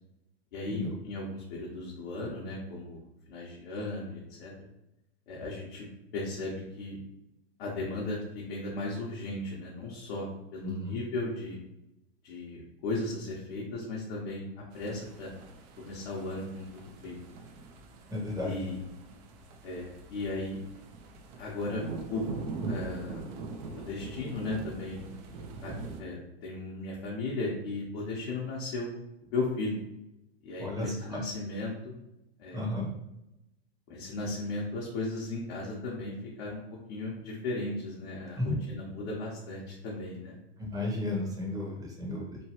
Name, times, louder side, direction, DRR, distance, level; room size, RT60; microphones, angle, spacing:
voice 1, 0.5-4.5 5.3-5.9 6.1-7.0 7.6-11.6 12.2-15.3 15.8-17.2 18.4-18.8 19.6-20.6 21.4-21.8 22.1-22.2 22.7-23.2 23.7-25.0 25.6-25.7 26.0-28.9 29.2-29.8 30.4-31.9 32.4-32.6 33.9-36.6 36.9-40.3, left 2 dB, 60° left, -5 dB, 0.9 m, -36 dB
voice 2, 10.6-11.0 18.1-18.5 30.6-31.2 32.5-32.9 38.4-38.6 40.6-42.4, left 2 dB, 10° right, -2 dB, 0.8 m, -33 dB
sound 1, 14.7-26.0, right 3 dB, 45° right, 0.5 m, -42 dB
3.0 x 2.2 x 2.9 m, 0.90 s
hypercardioid pair, 120°, 31 cm